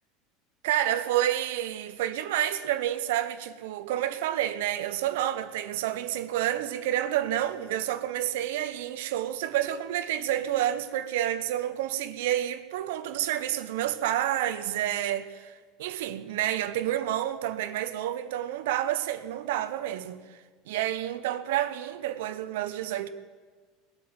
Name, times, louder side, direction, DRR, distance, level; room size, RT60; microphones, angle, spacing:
voice 1, 0.6-20.4 20.7-23.1, right 12 dB, 70° right, 1.0 m, -29 dB
20.5 x 8.6 x 7.8 m
hypercardioid pair, 75°, 0 cm